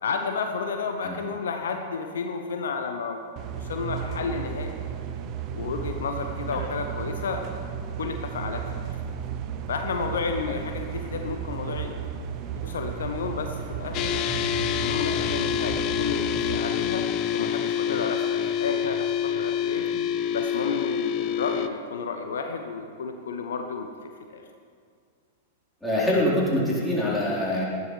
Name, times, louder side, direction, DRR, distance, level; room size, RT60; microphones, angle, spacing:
voice 1, 0.0-3.2 3.6-4.7 5.6-7.4 8.0-8.7 9.7-11.9 12.6-14.2 14.8-17.1 17.3-19.9 20.3-24.4, left 5 dB, 65° left, 5 dB, 0.9 m, -31 dB
sound 1, 3.4-16.6, right 8 dB, 35° right, 0.9 m, -34 dB
sound 2, 13.9-21.7, left 9 dB, 35° left, 0.6 m, -27 dB
voice 2, 25.8-27.6, left 1 dB, 5° left, -8 dB, 4.2 m, -24 dB
18.5 x 12.5 x 3.3 m, 2.2 s
figure-of-eight pair, 100°, 0 cm